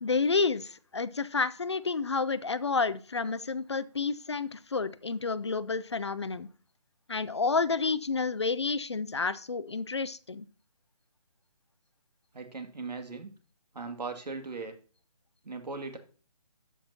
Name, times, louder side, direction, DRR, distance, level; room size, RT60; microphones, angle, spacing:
voice 1, 0.0-6.5 7.1-10.5, left 4 dB, 45° left, 16 dB, 0.4 m, -30 dB
voice 2, 12.3-13.3 13.7-14.8 15.4-16.0, right 4 dB, 85° right, 6 dB, 2.2 m, -38 dB
14.0 x 6.0 x 2.8 m, 0.38 s
hypercardioid pair, 175°, 20 cm